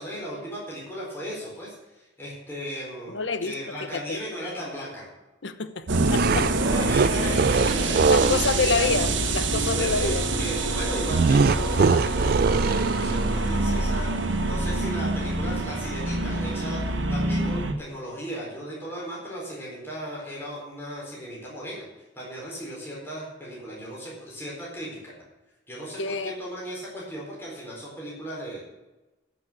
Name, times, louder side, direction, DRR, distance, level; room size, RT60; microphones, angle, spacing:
voice 1, 0.0-5.0 6.6-8.9 9.7-21.9 22.1-25.1 25.7-28.6, equal, 10° left, -6 dB, 4.2 m, -36 dB
voice 2, 3.1-4.2 5.4-6.5 8.1-10.2 26.0-26.4, left 4 dB, 75° left, 12 dB, 0.9 m, -28 dB
sound 1, 5.9-8.5 11.1-13.4, right 5 dB, 50° right, 0.3 m, -23 dB
sound 2, 5.9-17.7, right 2 dB, 80° right, 1.6 m, -26 dB
13.0 x 6.2 x 8.6 m, 1.1 s
head